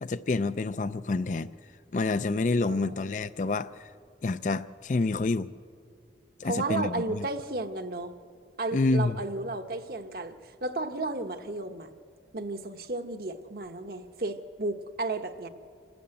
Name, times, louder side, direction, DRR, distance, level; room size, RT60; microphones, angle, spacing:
voice 1, 0.0-1.5 1.9-3.9 4.2-5.5 6.4-7.3 8.7-9.2, left 3 dB, 40° left, 14 dB, 0.4 m, -28 dB
voice 2, 2.7-3.0 6.4-8.1 8.6-11.9 12.3-15.5, right 2 dB, 55° right, 7 dB, 1.0 m, -33 dB
27.0 x 12.5 x 8.8 m, 2.3 s
head